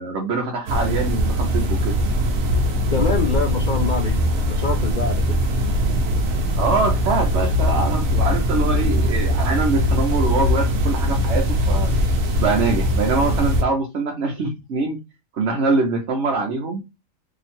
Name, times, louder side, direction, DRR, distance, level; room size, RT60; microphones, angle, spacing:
voice 1, 0.0-2.0 6.6-11.9 12.4-15.0 15.3-16.8, right 3 dB, 60° right, 1.1 m, -23 dB
sound 1, 0.7-13.6, equal, 85° right, 1.2 m, -21 dB
voice 2, 2.9-4.2 4.5-5.4, left 4 dB, 65° left, 0.4 m, -25 dB
2.9 x 2.8 x 4.2 m
omnidirectional pair, 1.4 m